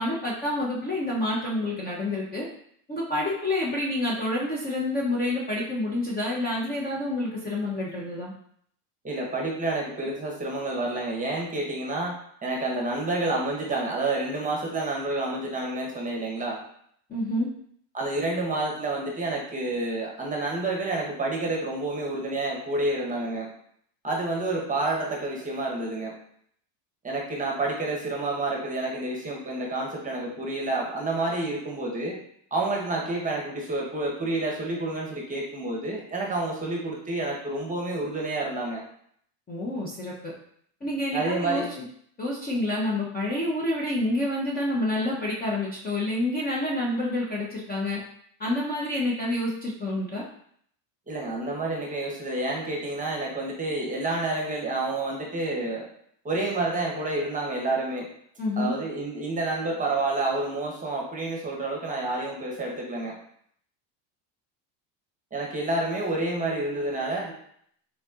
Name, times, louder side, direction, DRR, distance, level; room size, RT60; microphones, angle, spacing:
voice 1, 0.0-2.5 2.9-8.3 17.1-17.5 39.5-40.3 40.8-41.6 42.2-48.0 48.4-50.2 58.4-58.7, left 1 dB, 20° left, -5 dB, 0.6 m, -28 dB
voice 2, 9.0-12.1 12.4-16.6 17.9-23.5 24.0-26.1 27.0-32.2 32.5-38.8 41.1-41.7 51.1-55.9 56.2-58.1 58.6-63.1 65.3-67.3, right 2 dB, 15° right, -2 dB, 0.9 m, -29 dB
4.0 x 3.8 x 2.4 m, 0.66 s
supercardioid pair, 115°, 50 cm